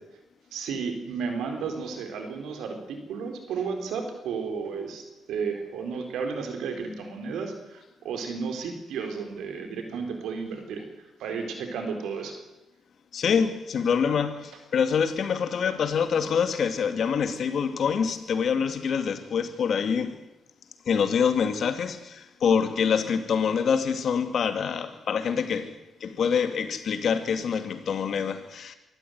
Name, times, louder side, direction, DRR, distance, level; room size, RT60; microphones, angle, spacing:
voice 1, 0.5-10.9 11.2-12.3, right 5 dB, 80° right, 4.3 m, -33 dB
voice 2, 13.1-20.2 20.9-28.7, left 6 dB, 60° left, 2.3 m, -26 dB
24.0 x 14.0 x 9.4 m
cardioid pair, 85°, 0 cm